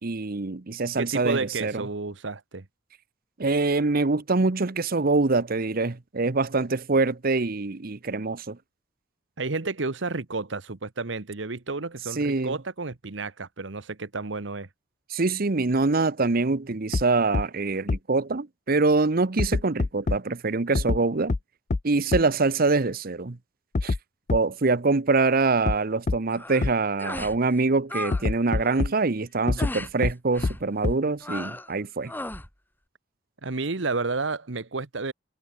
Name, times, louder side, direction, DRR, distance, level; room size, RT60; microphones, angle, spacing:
voice 1, 0.0-1.8 3.4-8.6 12.2-12.6 15.1-21.3 21.8-23.4 23.8-23.9 24.3-32.1, right 3 dB, 50° right, 0.9 m, -24 dB
voice 2, 1.0-2.6 9.4-14.7 33.4-35.1, right 3 dB, 65° right, 1.2 m, -31 dB
sound 1, 16.9-17.0 17.3-17.4 17.9-18.0 19.4-20.2 20.7-21.0 21.3-21.4 21.7-21.8 22.1-22.2 23.7-24.0 24.3-24.4 25.7-25.8 26.1-26.2 26.6-26.7 28.1-28.9 29.5-29.7 30.0-30.1 30.4-30.5 30.8-30.9, left 3 dB, 40° left, 0.5 m, -24 dB
sound 2, 26.3-26.7 27.0-27.4 27.6-28.2 28.5-28.8 29.6-29.9 30.3-30.6 31.2-31.7 32.1-32.5, left 1 dB, 10° left, 3.0 m, -36 dB
head